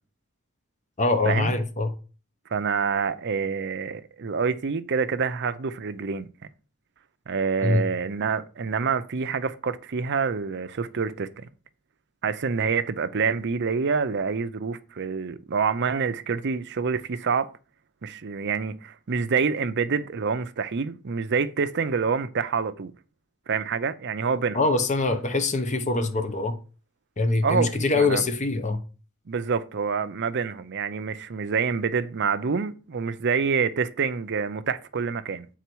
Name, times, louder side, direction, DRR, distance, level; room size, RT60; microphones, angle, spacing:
voice 1, 1.0-1.9 7.6-7.8 24.5-26.6 27.2-28.8, left 3 dB, 35° left, 0.8 m, -23 dB
voice 2, 2.5-6.3 7.3-11.5 12.2-17.5 18.0-22.9 23.5-24.6 27.4-28.2 29.3-35.5, right 5 dB, 55° right, 0.5 m, -27 dB
8.1 x 4.0 x 4.6 m
head